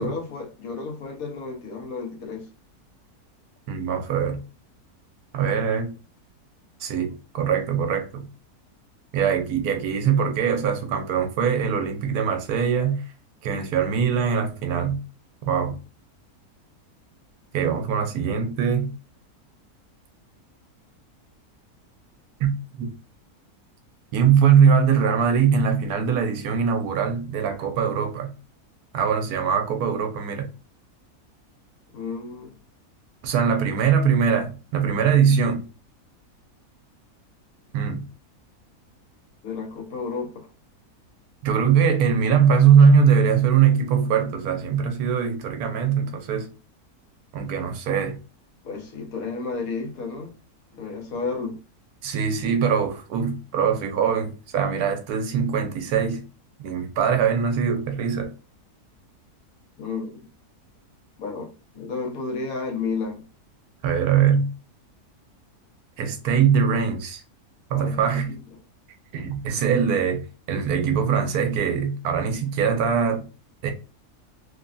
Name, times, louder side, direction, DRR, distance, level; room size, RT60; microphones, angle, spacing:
voice 1, 0.0-2.5 31.9-32.5 39.4-40.5 48.6-50.3 50.7-51.6 59.8-60.1 61.2-61.5 61.7-63.2 67.7-68.4, left 4 dB, 70° left, 1.2 m, -32 dB
voice 2, 3.7-4.4 5.3-5.9 6.8-8.3 9.1-13.0 13.4-15.0 15.5-15.8 17.5-18.9 22.4-22.5 22.8-22.9 24.1-28.3 28.9-30.5 33.2-35.6 37.7-38.0 41.4-46.5 47.3-48.2 52.0-56.2 56.6-58.3 63.8-64.5 66.0-67.2 67.7-68.3 69.1-70.2 70.5-73.2 73.6-73.7, right 7 dB, 75° right, 1.1 m, -22 dB
3.2 x 2.2 x 2.4 m
omnidirectional pair, 1.6 m